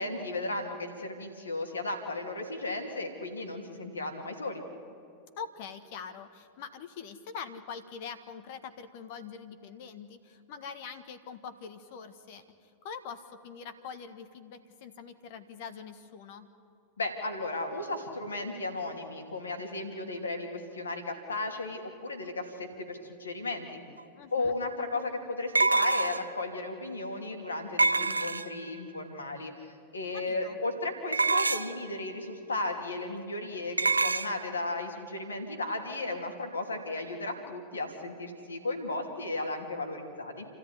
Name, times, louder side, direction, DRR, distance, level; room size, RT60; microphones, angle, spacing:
voice 1, 0.0-4.6 17.0-23.8 24.3-40.5, left 2 dB, 75° left, 5 dB, 2.9 m, -35 dB
voice 2, 5.4-16.5 24.2-24.5 30.1-30.6, left 6 dB, 50° left, 10 dB, 1.6 m, -44 dB
sound 1, 24.0-24.1 25.5-26.4 27.8-28.7 31.1-31.8 33.8-34.3, right 3 dB, 80° right, 0.7 m, -26 dB
28.5 x 14.0 x 9.9 m, 2.6 s
figure-of-eight pair, 90°, 0 cm